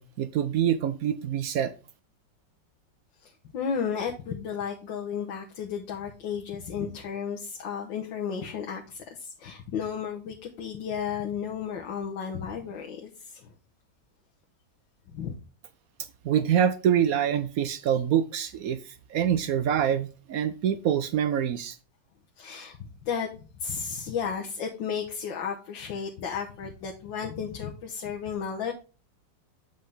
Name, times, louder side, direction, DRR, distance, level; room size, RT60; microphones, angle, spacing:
voice 1, 0.0-1.7 16.2-21.8, right 9 dB, 70° right, 0.9 m, -25 dB
voice 2, 3.2-13.5 15.1-15.3 22.4-23.3 23.6-28.7, left 7 dB, 80° left, 1.8 m, -33 dB
7.7 x 5.6 x 3.4 m
omnidirectional pair, 2.0 m